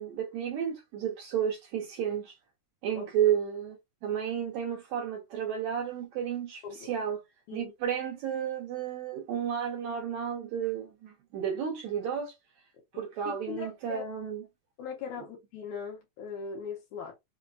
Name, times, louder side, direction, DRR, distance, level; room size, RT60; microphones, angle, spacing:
voice 1, 0.0-2.3 2.8-7.2 7.5-12.3 12.9-14.4, right 9 dB, 75° right, 1.7 m, -32 dB
voice 2, 12.9-14.0 14.8-17.1, left 6 dB, 75° left, 1.9 m, -40 dB
5.2 x 2.1 x 2.6 m
omnidirectional pair, 3.9 m